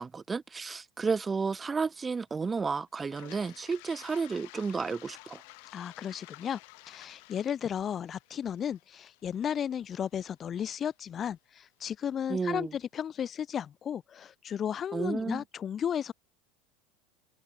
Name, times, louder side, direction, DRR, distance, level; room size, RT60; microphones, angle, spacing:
voice 1, 0.0-5.4 12.3-12.7 14.9-15.4, right 4 dB, 20° right, 1.4 m, -32 dB
Toilet flush, 3.0-10.9, left 30 dB, 65° left, 3.3 m, -53 dB
voice 2, 5.7-6.6 6.9-16.1, left 8 dB, 35° left, 0.6 m, -34 dB
hypercardioid pair, 90°, 0 cm